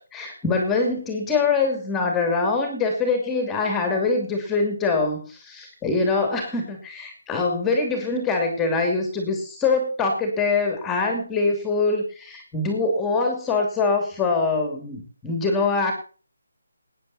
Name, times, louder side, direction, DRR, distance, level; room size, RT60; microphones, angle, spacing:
voice 1, 0.1-15.9, left 3 dB, 10° left, 4 dB, 2.7 m, -24 dB
19.0 x 9.9 x 4.1 m, 0.39 s
hypercardioid pair, 170°, 0 cm